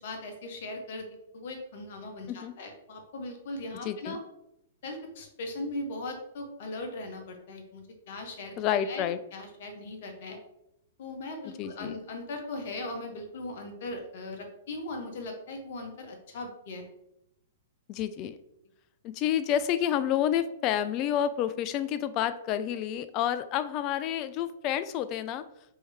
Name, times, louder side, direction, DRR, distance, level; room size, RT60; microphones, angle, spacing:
voice 1, 0.0-1.1 1.3-4.2 4.8-8.5 8.8-9.1 9.3-10.4 11.0-16.8, left 2 dB, 55° left, 4 dB, 0.9 m, -39 dB
voice 2, 3.8-4.2 8.6-9.2 11.6-12.0 17.9-18.4 19.0-25.4, left 10 dB, 35° left, 12 dB, 0.3 m, -29 dB
4.5 x 2.8 x 3.3 m, 0.82 s
figure-of-eight pair, 105°, 0 cm